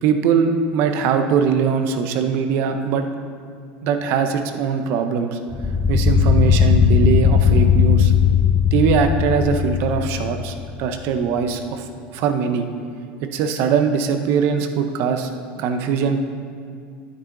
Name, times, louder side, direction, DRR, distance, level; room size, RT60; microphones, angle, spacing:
voice 1, 0.0-3.1 3.8-5.4 5.9-8.1 8.7-11.8 12.1-12.7 13.2-15.3 15.6-16.3, right 6 dB, 50° right, 7 dB, 0.8 m, -21 dB
sound 1, 5.5-10.8, left 7 dB, 10° left, 0.5 m, -17 dB
11.5 x 9.6 x 3.9 m, 2.2 s
cardioid pair, 165°, 5 cm